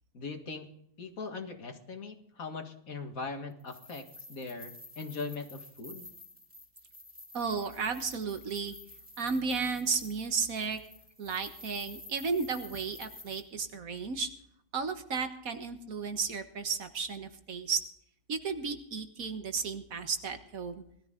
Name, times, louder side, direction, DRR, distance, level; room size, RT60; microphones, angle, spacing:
voice 1, 0.1-0.7 1.0-6.1, left 4 dB, 75° left, 4 dB, 2.3 m, -40 dB
sound 1, 3.6-13.4, left 2 dB, 10° right, 3.6 m, -51 dB
voice 2, 7.3-8.7 9.2-10.8 11.2-14.3 14.7-17.8 18.3-20.8, right 5 dB, 75° right, 7 dB, 1.8 m, -33 dB
20.0 x 13.0 x 3.8 m, 0.71 s
omnidirectional pair, 1.5 m